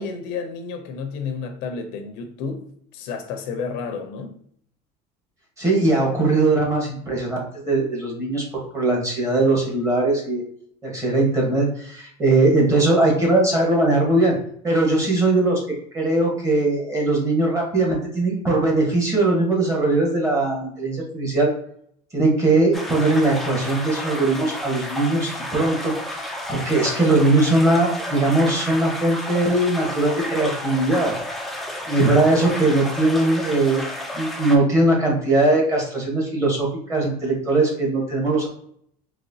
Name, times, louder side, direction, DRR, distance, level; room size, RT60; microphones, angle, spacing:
voice 1, 0.0-4.4, left 5 dB, 65° left, 0.6 m, -31 dB
voice 2, 5.6-8.4 8.7-10.4 10.8-14.3 14.6-15.6 15.9-21.5 22.1-31.1 31.9-38.5, right 2 dB, 15° right, 1.2 m, -20 dB
sound 1, 22.7-34.6, left 1 dB, ahead, 0.4 m, -31 dB
4.0 x 3.1 x 2.7 m
cardioid pair, 150°, 18 cm